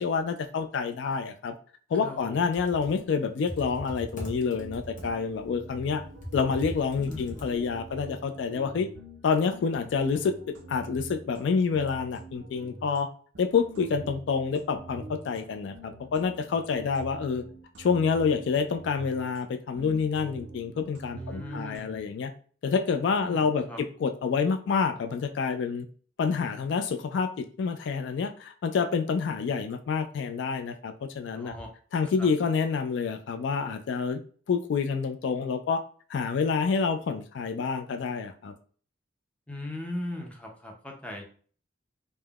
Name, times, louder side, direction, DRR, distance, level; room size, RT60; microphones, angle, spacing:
voice 1, 0.0-1.5 1.9-6.0 6.3-8.9 9.2-10.3 10.7-13.1 13.4-17.4 17.8-22.3 22.6-23.6 24.0-25.9 26.2-31.6 31.9-34.2 34.5-35.8 36.1-38.5, left 5 dB, 70° left, 7 dB, 0.3 m, -28 dB
voice 2, 2.0-2.4 7.1-7.4 21.1-21.9 23.2-23.8 31.4-31.7 32.2-32.3 39.5-41.2, left 1 dB, 5° left, 1 dB, 0.5 m, -38 dB
Computer keyboard, 2.3-7.9, equal, 45° left, 0.7 m, -41 dB
sound 1, 4.3-6.7 6.9-13.1 13.3-19.5 19.8-22.0, right 2 dB, 85° right, 0.5 m, -46 dB
3.3 x 2.1 x 2.3 m, 0.44 s
head